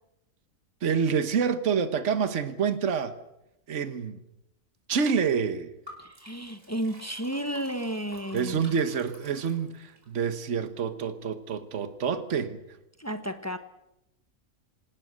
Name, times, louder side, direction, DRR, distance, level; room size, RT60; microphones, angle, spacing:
voice 1, 0.8-3.2 3.7-4.2 4.9-5.7 8.3-12.6, right 6 dB, 60° right, 1.6 m, -27 dB
Liquid, 5.9-10.1, equal, 40° right, 5.0 m, -50 dB
voice 2, 6.0-8.6 13.0-13.6, equal, 10° left, 1.1 m, -32 dB
27.0 x 19.0 x 6.5 m
omnidirectional pair, 1.4 m